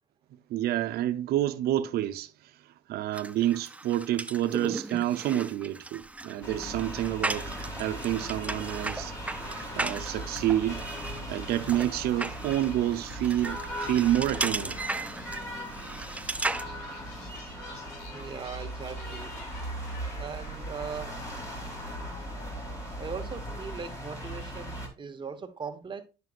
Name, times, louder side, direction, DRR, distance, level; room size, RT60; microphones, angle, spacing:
voice 1, 0.5-7.5 7.8-9.1 9.8-10.8 11.3-14.8, right 13 dB, 70° right, 0.6 m, -28 dB
sound 1, 3.1-16.6, right 2 dB, 10° right, 0.3 m, -36 dB
sound 2, 6.4-24.9, right 1 dB, 20° left, 2.5 m, -38 dB
sound 3, 9.4-24.1, left 4 dB, 90° left, 1.8 m, -53 dB
voice 2, 18.1-19.3 20.2-21.2 23.0-26.0, right 5 dB, 30° right, 1.1 m, -39 dB
9.3 x 5.9 x 2.5 m
cardioid pair, 105°, 17 cm